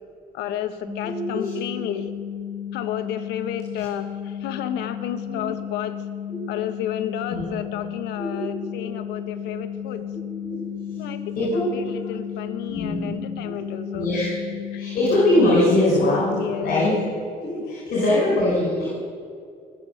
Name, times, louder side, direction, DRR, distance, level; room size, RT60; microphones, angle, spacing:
voice 1, 0.3-2.1 2.7-6.0 6.5-10.1 11.0-14.1 14.7-14.9 16.4-16.7 17.5-17.8, left 10 dB, 85° left, 10 dB, 1.0 m, -32 dB
sound 1, 0.9-17.1, left 9 dB, 10° left, 0.9 m, -33 dB
voice 2, 1.0-1.5 5.2-5.5 7.0-7.4 8.2-8.5 8.7-8.8 9.4-9.5 10.1-10.7 10.9-11.1 11.4-11.6 12.6-13.1 13.4-14.3 14.7-16.3 16.6-16.9 17.4-18.9, left 1 dB, 60° left, -5 dB, 4.1 m, -23 dB
19.5 x 6.8 x 6.4 m, 2.3 s
cardioid pair, 110°, 17 cm